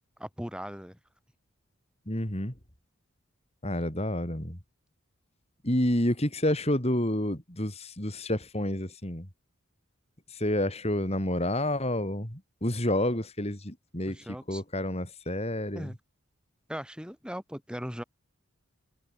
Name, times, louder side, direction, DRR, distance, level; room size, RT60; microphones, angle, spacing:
voice 1, 0.2-1.0 14.1-14.6 15.7-16.0 16.7-18.0, equal, 5° right, 3.6 m, -38 dB
voice 2, 2.1-2.5 3.6-4.6 5.6-9.3 10.3-14.2 14.5-15.9, left 1 dB, 30° left, 3.9 m, -29 dB
head